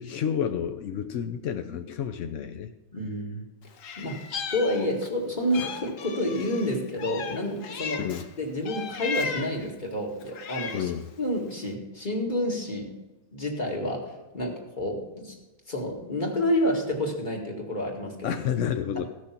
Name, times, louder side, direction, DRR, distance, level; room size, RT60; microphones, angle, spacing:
voice 1, 0.0-2.7 8.0-8.2 10.7-11.1 18.2-19.0, left 8 dB, 70° left, 8 dB, 0.7 m, -30 dB
voice 2, 2.9-3.5 4.0-4.2 4.5-8.0 8.4-10.9 11.2-12.9 13.3-15.4 15.7-18.4 19.0-19.1, left 1 dB, 25° left, 0 dB, 2.0 m, -29 dB
Meow, 3.8-5.2 5.5-8.3 8.7-9.7 10.2-11.0, left 5 dB, 55° left, 1.0 m, -36 dB
15.5 x 6.3 x 5.8 m, 1.0 s
omnidirectional pair, 1.9 m